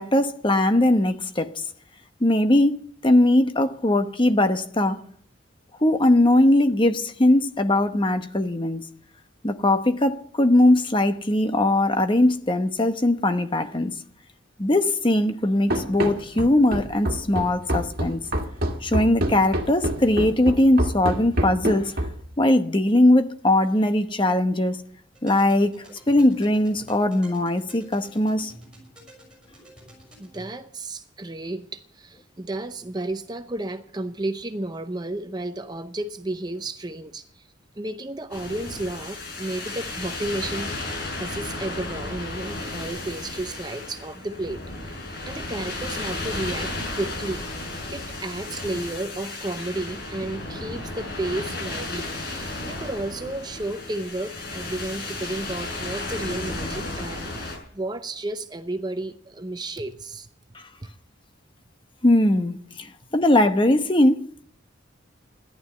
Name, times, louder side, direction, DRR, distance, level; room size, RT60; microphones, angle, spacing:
voice 1, 0.0-1.5 2.2-5.0 5.8-8.8 9.4-13.9 14.6-18.2 18.8-21.9 22.4-24.8 25.2-25.7 26.1-28.5 60.5-60.6 62.0-64.2, left 1 dB, 25° left, 1.0 m, -20 dB
Run, 15.7-22.3, right 1 dB, 50° right, 1.7 m, -27 dB
sound 1, 25.1-30.5, right 1 dB, 5° right, 5.9 m, -49 dB
voice 2, 30.2-37.5 37.8-40.8 41.2-44.6 45.3-47.4 47.9-52.1 52.6-57.3 57.7-60.3, right 2 dB, 20° right, 0.7 m, -32 dB
sound 2, 38.3-57.6, left 2 dB, 55° left, 6.2 m, -33 dB
14.5 x 11.5 x 7.9 m
head